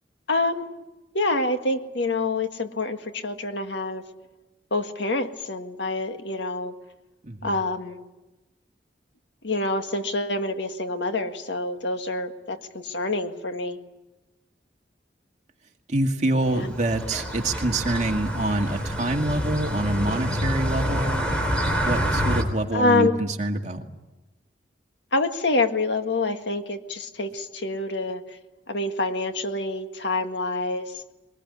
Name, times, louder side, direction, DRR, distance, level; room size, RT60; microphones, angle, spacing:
voice 1, 0.3-0.8 1.1-4.0 4.7-6.7 7.4-8.0 9.4-13.8 16.4-16.7 22.7-23.1 25.1-28.2 28.7-31.0, left 2 dB, 85° left, 6 dB, 1.8 m, -26 dB
voice 2, 15.9-21.2 21.8-23.8, right 1 dB, 40° right, 3 dB, 2.1 m, -26 dB
sound 1, 16.4-22.4, equal, 5° left, 3.5 m, -27 dB
22.0 x 20.5 x 9.8 m, 1.1 s
head